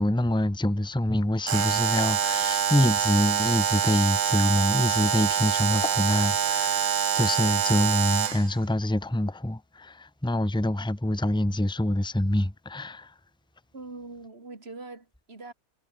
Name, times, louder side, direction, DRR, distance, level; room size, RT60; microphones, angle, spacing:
voice 1, 0.0-13.1, left 1 dB, 5° left, 1.3 m, -26 dB
Alarm, 1.5-8.5, right 8 dB, 75° right, 0.4 m, -25 dB
voice 2, 13.7-15.5, right 3 dB, 45° right, 3.3 m, -42 dB
omnidirectional pair, 1.5 m